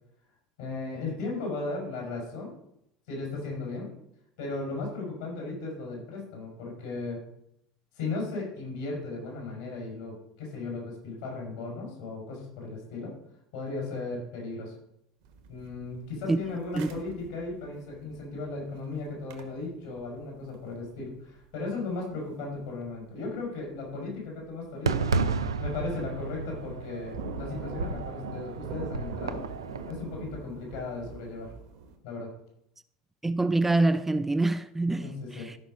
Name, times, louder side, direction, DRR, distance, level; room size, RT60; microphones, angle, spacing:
voice 1, 0.6-2.6 3.1-3.9 4.4-7.2 7.9-13.2 13.5-14.7 15.5-25.1 25.6-29.4 29.8-31.5 32.0-32.3 35.0-35.5, left 3 dB, 60° left, 5.2 m, -36 dB
sound 1, 15.2-23.2 23.5-23.6 24.3-24.6 24.9-25.3 25.7-25.8 26.1-32.0, right 4 dB, 55° right, 1.5 m, -44 dB
Fireworks, 24.9-29.9, right 4 dB, 75° right, 0.6 m, -32 dB
voice 2, 33.2-35.6, right 2 dB, 10° right, 0.4 m, -26 dB
13.5 x 6.1 x 5.2 m
figure-of-eight pair, 70°, 2 cm